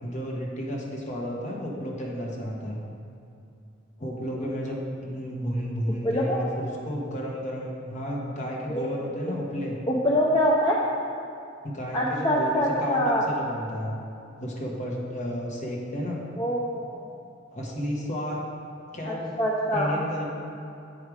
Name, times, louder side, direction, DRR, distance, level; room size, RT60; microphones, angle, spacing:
voice 1, 0.0-2.8 4.0-9.8 11.6-14.0 14.4-16.2 17.5-18.4 18.9-19.3 19.7-20.3, equal, 40° left, -2 dB, 1.2 m, -32 dB
voice 2, 5.9-6.4 8.7-8.9 9.3-9.4 9.9-10.8 11.9-13.3 16.4-17.1 19.1-20.0, equal, 25° left, -4 dB, 0.6 m, -25 dB
8.4 x 4.9 x 4.8 m, 2.6 s
head